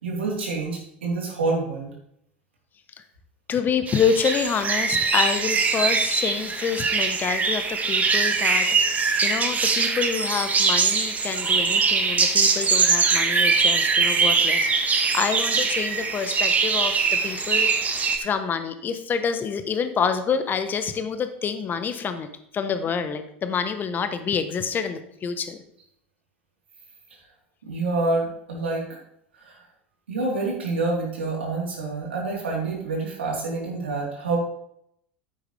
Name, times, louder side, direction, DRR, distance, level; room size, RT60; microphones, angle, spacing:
voice 1, 0.0-1.9 27.6-28.9 29.4-29.6 30.1-34.4, right 3 dB, 80° right, -3 dB, 3.7 m, -27 dB
voice 2, 3.5-22.3 22.5-25.6, left 6 dB, 30° left, 9 dB, 1.1 m, -27 dB
sound 1, 3.9-18.2, right 4 dB, 25° right, 1.4 m, -22 dB
10.0 x 8.6 x 3.4 m, 0.73 s
hypercardioid pair, 85°, 6 cm